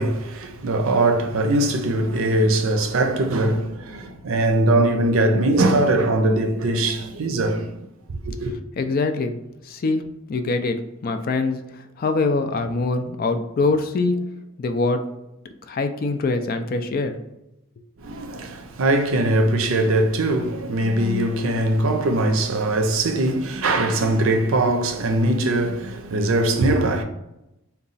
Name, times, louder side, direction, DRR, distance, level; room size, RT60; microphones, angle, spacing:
voice 1, 0.0-8.5 18.0-27.0, right 2 dB, 70° right, 0.5 m, -21 dB
voice 2, 8.8-9.4 9.6-14.2 14.6-15.0 15.7-17.2, left 3 dB, 45° left, 0.3 m, -24 dB
4.0 x 2.3 x 3.9 m
head